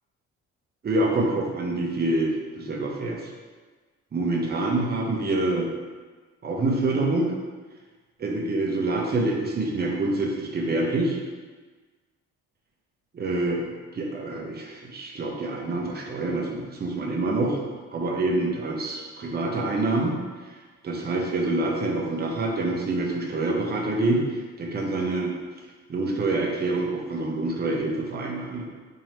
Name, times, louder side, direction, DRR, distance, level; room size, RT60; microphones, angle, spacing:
voice 1, 0.8-3.2 4.1-5.7 6.4-7.3 8.2-11.2 13.1-17.6 17.9-20.2 20.8-24.2 24.6-25.3 25.9-28.7, right 2 dB, 30° right, 0 dB, 0.7 m, -26 dB
3.0 x 2.7 x 4.3 m, 1.4 s
cardioid pair, 105°, 31 cm